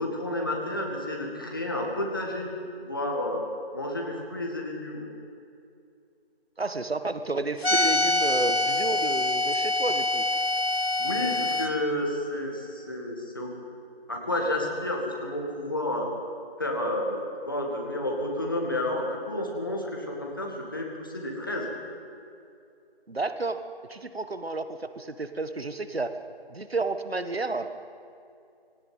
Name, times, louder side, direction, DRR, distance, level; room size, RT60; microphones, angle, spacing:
voice 1, 0.0-2.5 2.9-3.4 3.7-5.1 11.0-13.6 14.1-16.1 16.6-17.2 17.5-21.7, left 1 dB, 20° left, 0 dB, 2.0 m, -30 dB
voice 2, 6.6-10.3 23.1-23.6 23.9-26.2 26.5-27.7, right 3 dB, 75° right, 10 dB, 1.6 m, -31 dB
sound 1, 7.6-11.7, left 2 dB, 75° left, 2.4 m, -25 dB
19.5 x 18.0 x 9.4 m, 2.4 s
figure-of-eight pair, 175°, 31 cm